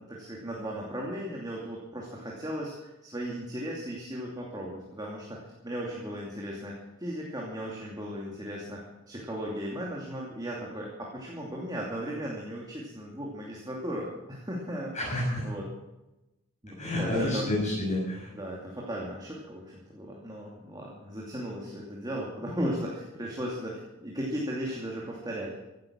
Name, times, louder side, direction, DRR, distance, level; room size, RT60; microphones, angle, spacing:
voice 1, 0.0-6.7 7.0-8.8 9.1-14.9 15.4-15.6 16.6-17.5 18.3-25.5, equal, 20° right, -3 dB, 2.7 m, -36 dB
voice 2, 14.9-15.4 16.8-18.3, left 1 dB, 35° left, -6 dB, 6.3 m, -29 dB
16.0 x 11.5 x 6.3 m, 0.99 s
head